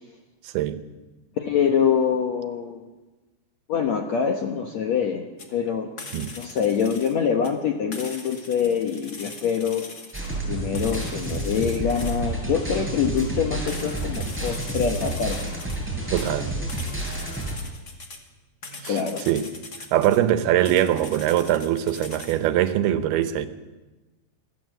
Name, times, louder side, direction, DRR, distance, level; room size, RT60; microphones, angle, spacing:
voice 1, 1.4-2.9 3.7-5.9 6.4-9.9 10.4-15.5 18.9-19.3, left 7 dB, 75° left, 4 dB, 1.6 m, -25 dB
sound 1, 5.4-5.5 6.0-7.1 7.4-7.5 7.9-10.3 10.7-12.2 13.2-13.3 13.7-15.8 16.2-18.2 18.6-20.2 20.6-22.4, left 3 dB, 35° left, 1.7 m, -41 dB
sound 2, 10.1-17.6, right 2 dB, 5° right, 6.3 m, -30 dB
voice 2, 16.1-16.5 18.8-19.0 19.3-19.5 19.9-23.5, right 11 dB, 75° right, 10 dB, 2.8 m, -22 dB
24.5 x 15.0 x 7.6 m, 1.2 s
omnidirectional pair, 4.8 m